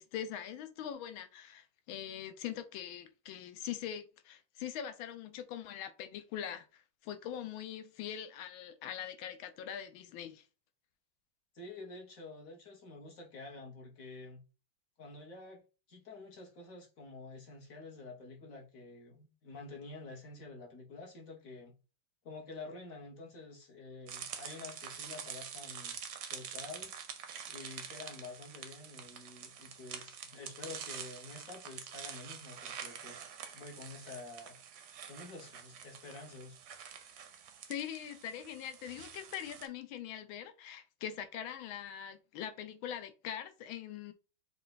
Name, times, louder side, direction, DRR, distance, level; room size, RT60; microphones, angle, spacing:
voice 1, 0.0-10.4 37.7-44.1, left 9 dB, 75° left, 1.4 m, -42 dB
voice 2, 11.5-14.4 15.0-15.6 15.9-21.7 22.2-26.0 26.3-26.9 27.5-33.2 33.5-34.6 35.0-36.6, left 3 dB, 50° left, 1.2 m, -49 dB
sound 1, 24.1-39.7, right 8 dB, 65° right, 1.0 m, -47 dB
5.4 x 2.4 x 3.9 m
omnidirectional pair, 2.3 m